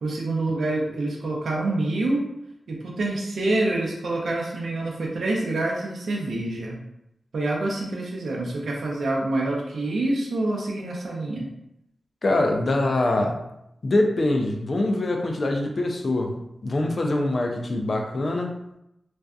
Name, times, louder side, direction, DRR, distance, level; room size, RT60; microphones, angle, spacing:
voice 1, 0.0-2.2 2.7-6.8 7.3-11.5, right 2 dB, 85° right, -2 dB, 0.6 m, -26 dB
voice 2, 12.2-13.4 13.8-18.5, left 2 dB, 55° left, 2 dB, 0.4 m, -24 dB
2.6 x 2.3 x 2.3 m, 0.84 s
wide cardioid pair, 70°, 0 cm